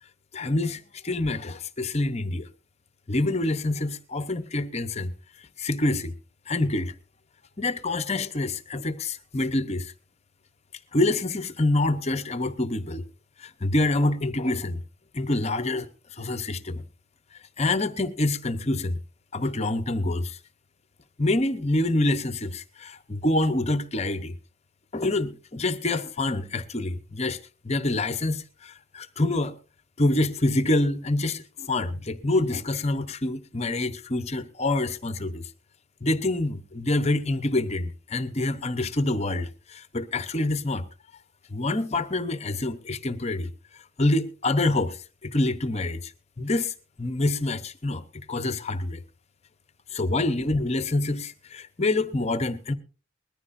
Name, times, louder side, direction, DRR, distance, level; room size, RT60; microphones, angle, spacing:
voice 1, 0.3-2.5 3.1-5.1 5.4-6.1 6.5-6.9 7.6-9.9 10.9-13.0 13.4-14.8 15.1-16.8 17.6-19.0 19.3-20.4 21.2-24.3 24.9-27.4 27.6-29.5 30.0-35.4 36.0-40.9 41.5-46.1 46.4-48.0 48.3-49.0 49.9-52.7, left 2 dB, 35° left, 0.9 m, -26 dB
20.5 x 14.0 x 2.6 m
head